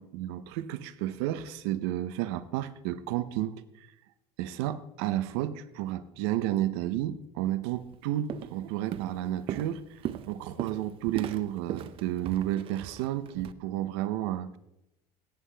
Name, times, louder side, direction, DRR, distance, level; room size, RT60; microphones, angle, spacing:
voice 1, 0.0-3.6 4.4-10.0 10.3-14.6, right 13 dB, 90° right, 13 dB, 0.7 m, -32 dB
Walk footsteps, 7.7-8.0 8.3-8.6 8.9-13.5, right 11 dB, 45° right, 0.5 m, -38 dB
15.0 x 8.3 x 3.4 m, 0.85 s
cardioid pair, 135°, 13 cm